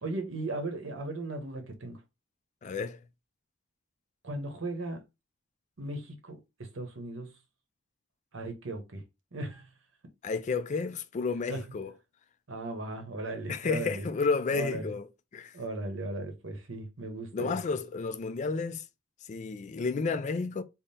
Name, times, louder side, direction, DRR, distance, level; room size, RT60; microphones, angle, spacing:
voice 1, 0.0-2.0 4.2-5.0 5.8-7.4 8.3-9.0 9.3-9.7 11.5-11.6 12.5-14.1 14.5-14.9 15.5-17.6, right 2 dB, 85° right, 1.0 m, -37 dB
voice 2, 2.6-3.0 10.2-11.9 13.5-15.1 15.3-15.6 17.3-18.8 19.3-20.6, left 4 dB, 40° left, 0.3 m, -31 dB
3.7 x 2.1 x 4.0 m
head